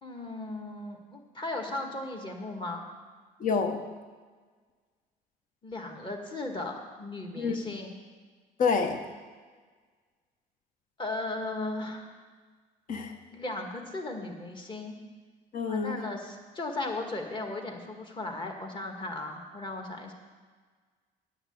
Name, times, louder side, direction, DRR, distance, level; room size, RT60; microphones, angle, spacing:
voice 1, 0.0-2.9 5.6-8.0 11.0-12.1 13.3-15.0 15.7-20.1, left 2 dB, 30° left, 3 dB, 1.7 m, -36 dB
voice 2, 3.4-3.8 7.4-7.6 8.6-9.0 12.9-13.1 15.5-16.0, left 5 dB, 50° left, 6 dB, 1.2 m, -27 dB
9.6 x 5.9 x 8.5 m, 1.5 s
cardioid pair, 110°, 17 cm